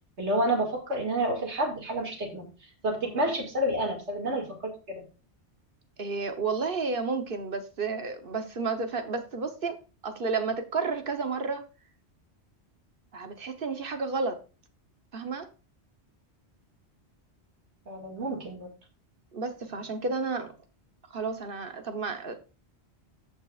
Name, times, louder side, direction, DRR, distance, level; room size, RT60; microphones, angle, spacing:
voice 1, 0.2-5.0 17.9-18.7, right 1 dB, 85° right, 2.5 m, -29 dB
voice 2, 6.0-9.8 10.0-11.7 13.1-14.4 15.1-15.5 19.3-20.5 21.1-22.4, right 4 dB, 55° right, 1.2 m, -31 dB
15.0 x 5.6 x 2.4 m
omnidirectional pair, 1.1 m